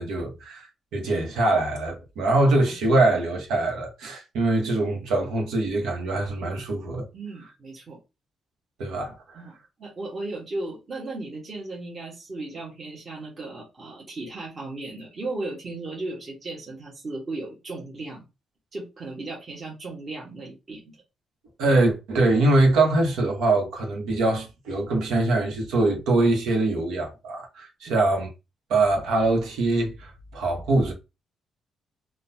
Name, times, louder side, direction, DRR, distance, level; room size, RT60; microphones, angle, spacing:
voice 1, 0.0-7.1 8.8-9.4 21.6-28.3 28.7-30.9, right 2 dB, 85° right, 1.1 m, -23 dB
voice 2, 7.1-8.0 9.3-18.2 18.7-20.9 27.9-28.0, right 2 dB, 40° right, 1.2 m, -36 dB
3.8 x 2.3 x 2.7 m
cardioid pair, 90°, 0 cm